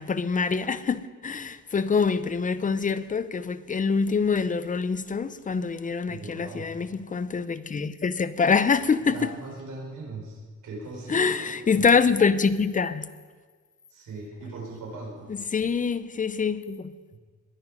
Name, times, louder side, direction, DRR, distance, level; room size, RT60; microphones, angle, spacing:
voice 1, 0.0-9.3 11.1-13.1 15.3-16.9, left 5 dB, 25° left, 0.6 m, -25 dB
voice 2, 6.1-6.7 9.0-12.0 13.9-15.3 17.1-17.2, right 2 dB, 80° right, 6.0 m, -39 dB
21.5 x 9.4 x 5.4 m
cardioid pair, 145°, 31 cm